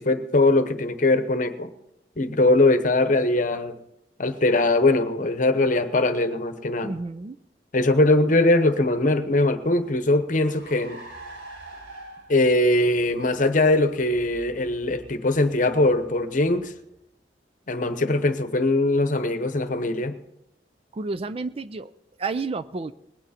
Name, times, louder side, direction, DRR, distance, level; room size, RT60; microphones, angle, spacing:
voice 1, 0.0-1.7 2.2-3.8 4.2-6.9 7.7-11.0 12.3-16.7 17.7-20.2, left 2 dB, 45° left, 1.0 m, -21 dB
voice 2, 6.8-7.4 20.9-21.9 22.2-22.9, right 3 dB, 35° right, 0.4 m, -30 dB
Car, 9.2-17.0, right 2 dB, 85° right, 4.1 m, -47 dB
20.5 x 9.2 x 4.2 m
head